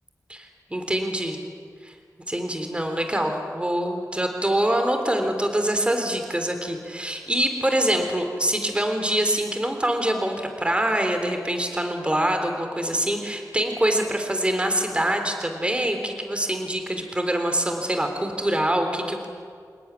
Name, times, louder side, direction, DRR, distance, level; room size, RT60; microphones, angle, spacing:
voice 1, 0.3-1.4 1.8-1.9 2.3-19.3, right 1 dB, 15° right, 5 dB, 3.5 m, -25 dB
28.5 x 18.5 x 9.8 m, 2.2 s
wide cardioid pair, 85°, 7 cm